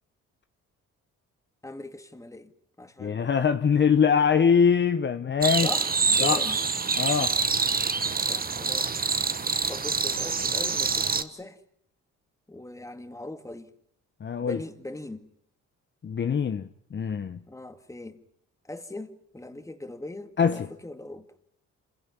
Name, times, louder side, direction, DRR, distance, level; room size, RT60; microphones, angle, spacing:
voice 1, 1.6-2.5 2.8-3.2 5.6-6.6 8.2-8.9 9.7-11.6 12.5-13.7 14.4-15.3 17.5-18.2 18.6-21.3, left 2 dB, 10° left, 2.1 m, -40 dB
voice 2, 3.0-5.7 6.2-6.4 7.0-7.3 14.2-14.6 16.0-16.6 16.9-17.4 20.4-20.7, left 6 dB, 35° left, 1.0 m, -23 dB
sound 1, 5.4-11.2, right 5 dB, 30° right, 1.5 m, -26 dB
27.0 x 16.5 x 9.6 m
cardioid pair, 90°, 30 cm